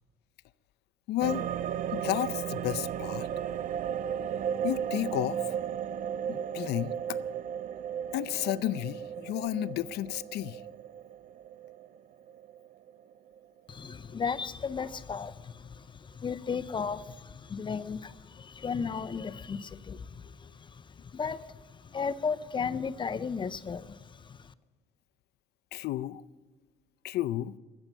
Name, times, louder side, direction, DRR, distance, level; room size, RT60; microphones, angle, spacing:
voice 1, 1.1-1.5 1.9-3.3 4.6-5.6 6.3-7.2 8.1-10.6 25.7-26.2 27.0-27.5, left 14 dB, 75° left, 0.5 m, -32 dB
sound 1, 1.2-13.4 13.7-13.8, right 9 dB, 55° right, 0.4 m, -35 dB
voice 2, 13.7-21.6 21.8-24.4, left 6 dB, 30° left, 0.5 m, -35 dB
14.5 x 7.2 x 10.0 m
cardioid pair, 110°, 17 cm